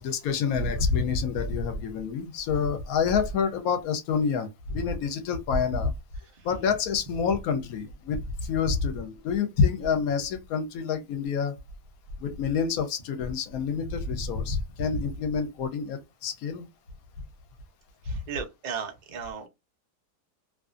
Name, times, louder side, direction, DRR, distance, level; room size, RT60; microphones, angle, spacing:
voice 1, 0.0-5.9 6.4-11.5 12.2-16.7, left 5 dB, 70° left, 1.0 m, -27 dB
voice 2, 18.0-19.5, right 6 dB, 70° right, 0.4 m, -35 dB
2.5 x 2.5 x 2.4 m
omnidirectional pair, 1.7 m